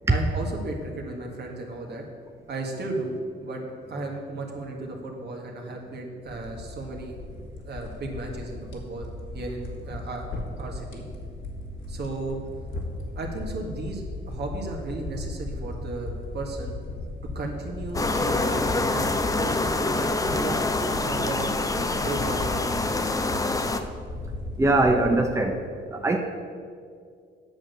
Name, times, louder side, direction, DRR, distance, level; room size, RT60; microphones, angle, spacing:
voice 1, 0.1-2.0 2.5-3.1 3.4-3.6 3.9-7.2 7.6-9.1 9.3-10.3 10.6-11.0 11.9-12.4 13.2-16.7 17.4-20.6 21.0-21.5 21.9-22.7, right 2 dB, 55° right, 1 dB, 1.9 m, -34 dB
sound 1, 6.3-25.2, left 2 dB, 75° left, 1.8 m, -36 dB
sound 2, 17.9-23.8, left 2 dB, 15° left, 0.7 m, -26 dB
voice 2, 24.6-25.6 25.9-26.2, right 2 dB, 15° right, 3 dB, 0.8 m, -21 dB
8.8 x 6.4 x 6.8 m, 2.2 s
cardioid pair, 90°, 20 cm